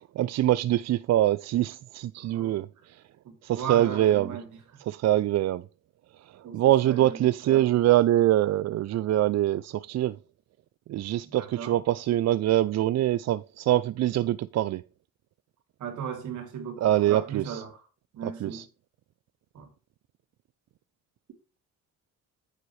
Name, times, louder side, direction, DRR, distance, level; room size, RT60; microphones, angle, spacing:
voice 1, 0.2-2.7 3.4-4.4 4.9-5.6 6.5-10.2 10.9-14.8 16.8-17.6 18.4-18.6, right 13 dB, 60° right, 0.4 m, -24 dB
voice 2, 2.2-2.6 3.2-4.8 6.4-7.8 11.2-11.8 15.8-17.9 18.1-18.7 19.5-19.7, right 7 dB, 75° right, 3.0 m, -37 dB
9.2 x 6.7 x 3.2 m
cardioid pair, 95°, 30 cm